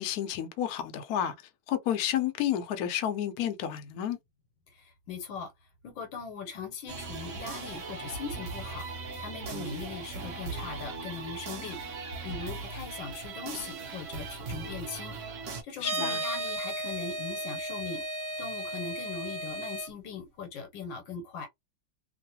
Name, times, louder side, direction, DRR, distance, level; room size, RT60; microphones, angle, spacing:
voice 1, 0.0-1.3 1.7-4.2 15.8-16.2, left 10 dB, 65° left, 1.0 m, -30 dB
voice 2, 4.7-5.5 5.8-8.9 9.2-15.2 15.6-18.0 18.4-21.5, left 5 dB, 85° left, 1.5 m, -40 dB
sound 1, 6.9-15.6, right 4 dB, 55° right, 0.9 m, -39 dB
sound 2, 15.8-19.9, right 2 dB, 30° right, 0.3 m, -34 dB
3.0 x 2.3 x 2.8 m
omnidirectional pair, 2.0 m